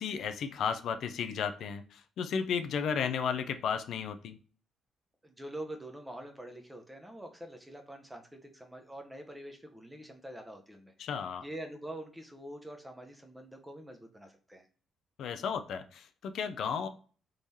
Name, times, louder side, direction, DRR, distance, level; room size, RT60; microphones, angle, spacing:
voice 1, 0.0-4.4 11.0-11.4 15.2-16.9, left 6 dB, 70° left, 9 dB, 0.3 m, -34 dB
voice 2, 5.2-10.9 11.4-14.7, right 1 dB, 10° right, 4 dB, 0.7 m, -45 dB
3.7 x 3.1 x 2.6 m, 0.40 s
cardioid pair, 90°, 0 cm